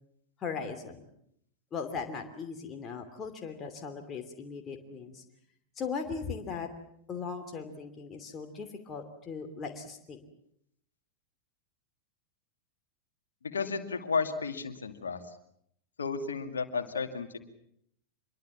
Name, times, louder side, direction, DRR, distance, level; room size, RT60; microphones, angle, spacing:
voice 1, 0.4-1.0 1.7-5.2 5.8-6.7 7.1-10.2, left 5 dB, 25° left, 4 dB, 2.8 m, -38 dB
voice 2, 13.4-15.2 16.0-17.4, left 5 dB, 70° left, 7 dB, 2.4 m, -33 dB
26.0 x 22.5 x 7.3 m, 0.71 s
figure-of-eight pair, 90°, 0 cm